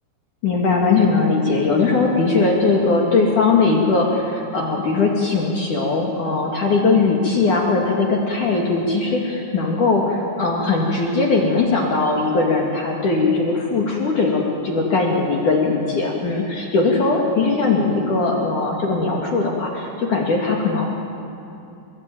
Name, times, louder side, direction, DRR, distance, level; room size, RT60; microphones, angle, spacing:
voice 1, 0.4-20.9, left 3 dB, 45° left, -1 dB, 3.0 m, -19 dB
30.0 x 21.5 x 9.3 m, 2.8 s
omnidirectional pair, 5.9 m